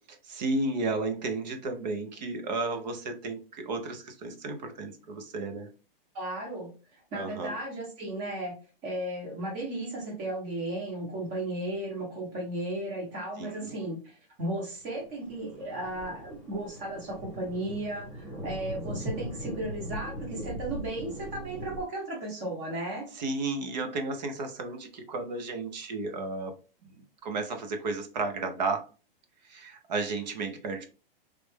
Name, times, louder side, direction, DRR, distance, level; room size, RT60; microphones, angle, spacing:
voice 1, 0.2-5.7 7.1-7.5 13.4-13.7 23.1-26.6 26.8-27.0 27.2-28.9 29.4-30.9, right 3 dB, 45° right, 0.8 m, -33 dB
voice 2, 6.1-8.6 8.8-23.1, right 1 dB, 25° right, 1.1 m, -35 dB
Thunder, 15.0-21.8, equal, 5° left, 1.3 m, -39 dB
3.3 x 2.4 x 3.3 m
hypercardioid pair, 170°, 30 cm